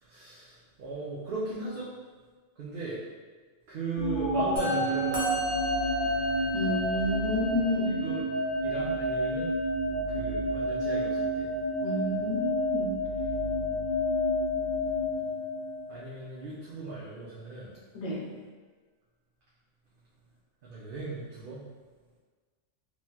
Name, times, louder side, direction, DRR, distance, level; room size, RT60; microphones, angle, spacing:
voice 1, 0.0-1.9 2.6-3.0 3.7-5.5 8.0-8.2 8.6-9.5 10.1-11.5 15.9-17.7 20.6-21.7, right 3 dB, 60° right, -8 dB, 0.7 m, -37 dB
sound 1, 4.0-16.1, equal, 55° left, 0.5 m, -29 dB
Musical instrument, 4.6-14.1, right 2 dB, 85° right, 1.3 m, -42 dB
Musical instrument 2, 5.1-12.4, left 1 dB, 15° right, 0.5 m, -41 dB
voice 2, 6.5-8.0 11.8-13.0 17.9-18.3, left 1 dB, 75° left, -4 dB, 1.0 m, -30 dB
3.1 x 2.7 x 2.2 m, 1.4 s
omnidirectional pair, 1.2 m